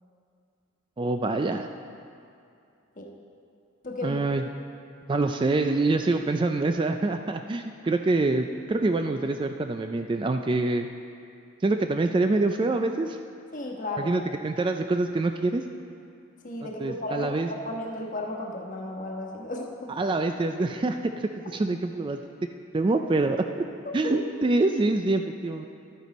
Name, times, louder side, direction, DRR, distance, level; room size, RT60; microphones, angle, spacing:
voice 1, 1.0-1.7 4.0-4.4 5.1-10.9 11.6-13.2 14.0-15.6 16.8-17.5 20.0-22.2 22.7-23.7 23.9-25.7, right 2 dB, 25° right, 6 dB, 0.3 m, -25 dB
voice 2, 3.8-4.2 13.5-14.1 16.4-19.9 23.8-24.1, left 1 dB, 40° left, -1 dB, 1.2 m, -34 dB
12.0 x 9.4 x 4.1 m, 2.5 s
head